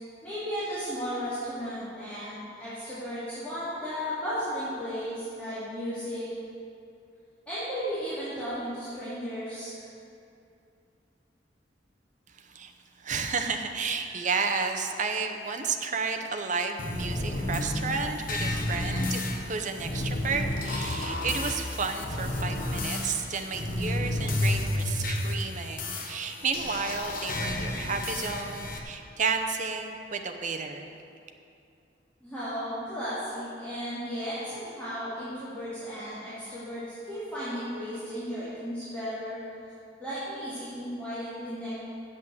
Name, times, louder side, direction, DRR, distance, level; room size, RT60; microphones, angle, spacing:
voice 1, 0.2-6.3 7.5-9.8 32.2-39.4 40.0-41.7, equal, 10° left, -14 dB, 2.7 m, -35 dB
voice 2, 12.4-12.7 13.0-30.9, right 5 dB, 45° right, 5 dB, 0.7 m, -32 dB
sound 1, 16.8-28.8, left 1 dB, 50° left, 1.0 m, -31 dB
8.1 x 7.2 x 7.9 m, 2.6 s
head